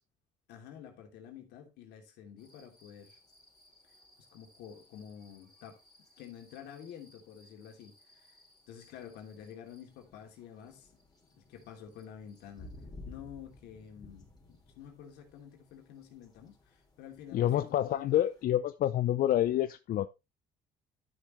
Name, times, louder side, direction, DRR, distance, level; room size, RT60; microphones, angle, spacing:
voice 1, 0.5-3.2 4.3-5.8 6.2-8.4 8.7-10.9 11.4-12.7 13.0-18.1, left 8 dB, 85° left, 2.7 m, -49 dB
sound 1, 2.4-18.4, left 2 dB, 25° left, 3.5 m, -57 dB
voice 2, 17.3-20.1, left 12 dB, 60° left, 0.6 m, -28 dB
11.5 x 6.5 x 3.1 m
cardioid pair, 110°, 17 cm